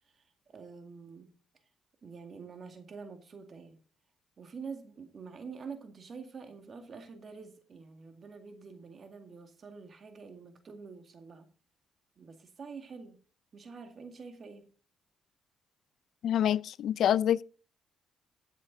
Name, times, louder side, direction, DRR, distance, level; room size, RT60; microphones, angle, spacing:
voice 1, 0.5-1.3 2.0-3.8 4.4-11.5 12.2-13.2 13.5-14.7, right 5 dB, 45° right, 2.1 m, -46 dB
voice 2, 16.2-17.4, left 10 dB, 70° left, 0.4 m, -26 dB
14.5 x 7.3 x 3.9 m
cardioid pair, 90°, 0 cm